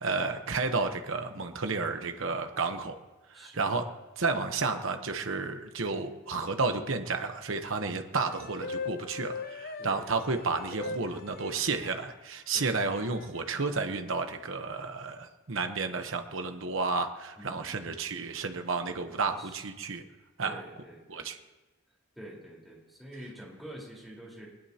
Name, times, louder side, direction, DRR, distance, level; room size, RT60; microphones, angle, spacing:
voice 1, 0.0-3.0 3.3-3.8 4.2-20.0 20.4-20.6 21.1-21.4, right 4 dB, 65° right, 6 dB, 1.0 m, -31 dB
voice 2, 3.3-3.7 9.8-10.2 12.5-12.8 17.4-18.0 19.2-19.7 20.4-21.3 22.1-24.5, right 1 dB, ahead, -4 dB, 4.3 m, -47 dB
sound 1, 8.1-12.0 12.8-13.4, left 4 dB, 45° left, 0.7 m, -40 dB
21.5 x 20.0 x 2.9 m, 1.1 s
head